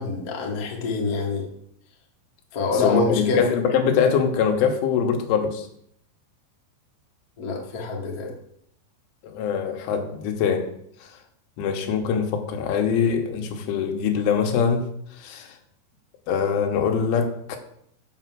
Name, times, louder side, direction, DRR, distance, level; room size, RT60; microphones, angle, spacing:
voice 1, 0.0-1.4 2.5-3.4 7.4-8.3, left 3 dB, 65° left, -1 dB, 0.9 m, -26 dB
voice 2, 2.7-5.7 9.2-10.7 11.0-11.1 11.6-14.9 15.1-15.6 16.3-17.6, left 7 dB, 90° left, 4 dB, 3.8 m, -23 dB
9.1 x 6.0 x 7.7 m, 0.70 s
omnidirectional pair, 5.4 m